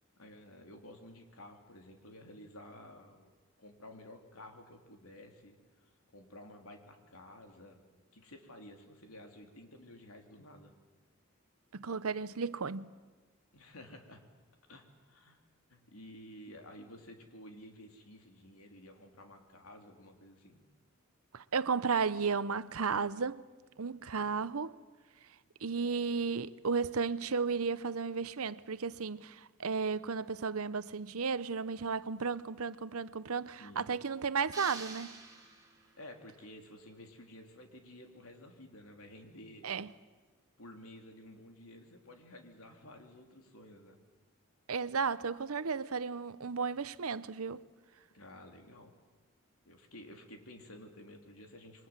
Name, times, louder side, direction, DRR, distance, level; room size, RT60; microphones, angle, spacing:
voice 1, 0.2-3.3 3.6-5.6 5.8-7.8 8.1-10.7 13.5-14.2 14.7-15.4 15.7-20.6 33.6-33.9 36.0-39.7 40.6-44.0 48.1-48.9 49.6-51.9, left 1 dB, 85° left, 3.4 m, -52 dB
voice 2, 11.7-12.9 21.3-23.4 23.8-24.8 25.6-35.1 39.6-39.9 44.7-47.6, right 5 dB, 85° right, 0.8 m, -34 dB
sound 1, 34.5-36.1, right 4 dB, 15° right, 3.5 m, -47 dB
27.5 x 23.0 x 7.5 m
head